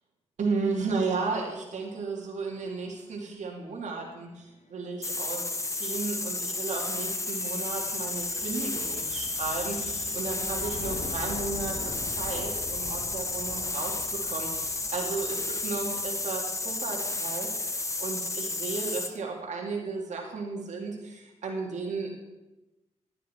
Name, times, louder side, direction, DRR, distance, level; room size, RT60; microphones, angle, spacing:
voice 1, 0.4-17.7 18.0-22.1, right 4 dB, 85° right, 0 dB, 2.0 m, -34 dB
sound 1, 4.4-17.8, left 3 dB, 75° left, 1.3 m, -45 dB
sound 2, 5.0-19.2, left 2 dB, 25° left, 1.0 m, -32 dB
11.5 x 9.1 x 4.3 m, 1.0 s
cardioid pair, 70°, 12 cm